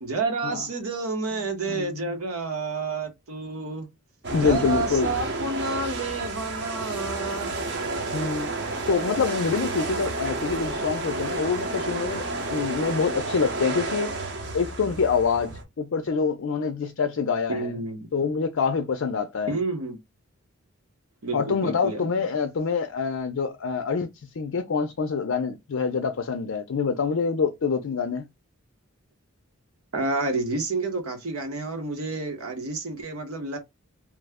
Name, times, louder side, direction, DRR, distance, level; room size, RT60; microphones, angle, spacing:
voice 1, 0.0-3.9 4.4-7.5 17.5-18.0 19.5-20.0 21.2-22.0 29.9-33.6, right 3 dB, 85° right, 1.0 m, -29 dB
voice 2, 1.7-2.2 4.3-5.1 7.2-7.3 8.1-8.5 8.9-14.1 14.5-17.7 18.1-19.5 21.3-24.1 24.4-28.2, left 5 dB, 65° left, 0.4 m, -26 dB
sound 1, 4.2-15.6, right 2 dB, 50° right, 0.7 m, -31 dB
3.0 x 2.1 x 3.5 m
head